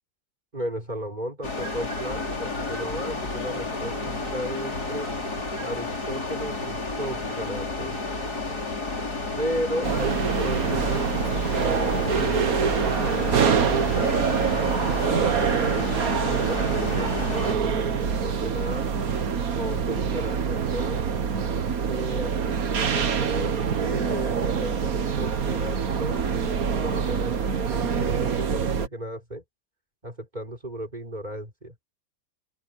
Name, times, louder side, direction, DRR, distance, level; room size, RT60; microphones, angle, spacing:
voice 1, 0.5-5.1 5.6-8.0 9.4-11.1 11.5-12.6 13.0-18.9 19.5-21.0 21.9-23.5 23.8-26.3 26.8-29.4 30.0-31.7, equal, 20° right, 5.5 m, -35 dB
sound 1, 1.4-17.5, left 3 dB, 55° left, 5.5 m, -31 dB
sound 2, 9.8-28.9, right 6 dB, 55° right, 1.7 m, -25 dB
open air
omnidirectional pair, 2.0 m